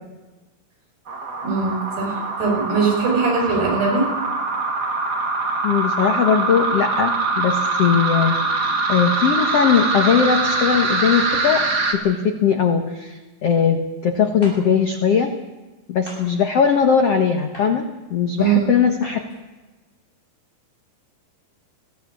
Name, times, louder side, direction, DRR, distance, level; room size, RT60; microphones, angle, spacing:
sound 1, 1.1-11.9, right 3 dB, 35° right, 1.8 m, -23 dB
voice 1, 1.4-4.1 18.4-18.7, right 5 dB, 65° right, 0 dB, 7.4 m, -21 dB
voice 2, 5.6-11.6 11.9-15.3 15.9-17.8 18.1-19.2, left 7 dB, 70° left, 5 dB, 1.4 m, -19 dB
sound 2, 14.4-14.6 16.1-16.2 17.5-17.7 19.0-19.2, equal, 10° left, 6.9 m, -37 dB
20.0 x 17.0 x 8.4 m, 1.2 s
omnidirectional pair, 5.0 m